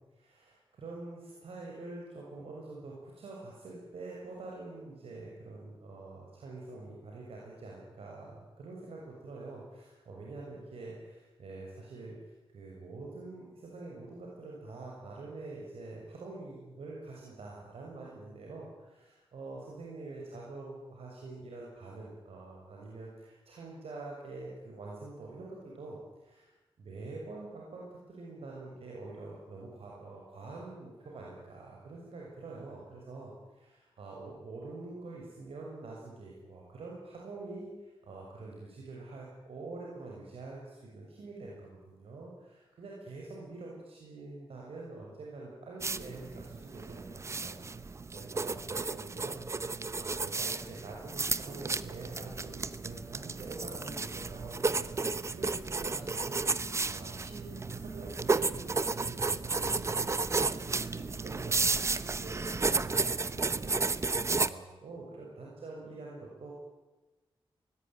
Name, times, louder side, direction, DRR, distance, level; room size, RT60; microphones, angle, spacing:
voice 1, 0.1-26.5 26.8-66.5, right 3 dB, 85° right, -3 dB, 6.6 m, -46 dB
sound 1, 45.8-64.5, right 3 dB, 30° right, 0.8 m, -33 dB
24.0 x 20.0 x 9.3 m, 1.1 s
wide cardioid pair, 140°, 10 cm